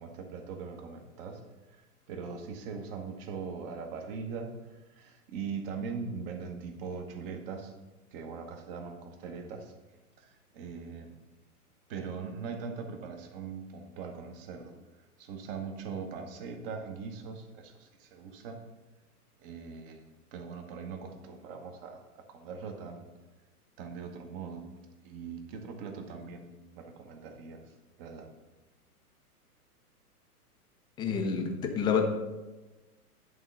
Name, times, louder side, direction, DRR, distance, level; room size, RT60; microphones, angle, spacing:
voice 1, 0.0-7.7 8.1-9.7 10.2-11.1 11.9-18.6 19.4-20.0 20.3-23.0 23.8-24.7 25.0-28.3, right 5 dB, 40° right, 5 dB, 1.2 m, -41 dB
voice 2, 31.0-32.0, left 6 dB, 10° left, 4 dB, 0.5 m, -28 dB
11.0 x 3.8 x 5.6 m, 1.1 s
figure-of-eight pair, 110°, 46 cm